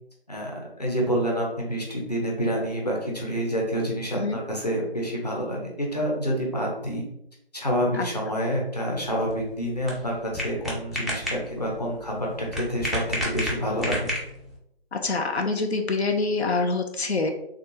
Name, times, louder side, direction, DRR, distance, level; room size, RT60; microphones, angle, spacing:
voice 1, 0.3-7.0 7.5-14.1, equal, 40° left, -2 dB, 0.7 m, -28 dB
sound 1, 8.9-14.6, equal, ahead, 0.4 m, -32 dB
voice 2, 14.9-17.3, left 3 dB, 85° left, 4 dB, 0.5 m, -25 dB
3.4 x 2.4 x 2.9 m, 0.79 s
figure-of-eight pair, 175°, 32 cm